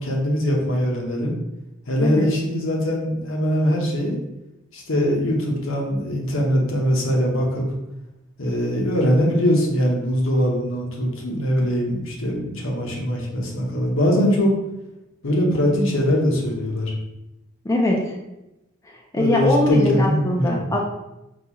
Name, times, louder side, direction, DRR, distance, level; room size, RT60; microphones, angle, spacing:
voice 1, 0.0-1.3 1.9-4.2 4.7-7.7 8.4-14.6 15.2-16.9 19.2-20.6, equal, 70° left, -1 dB, 0.8 m, -22 dB
voice 2, 2.0-2.3 17.6-18.2 18.8-20.9, left 1 dB, 15° left, -2 dB, 0.3 m, -22 dB
3.9 x 2.3 x 2.9 m, 0.91 s
head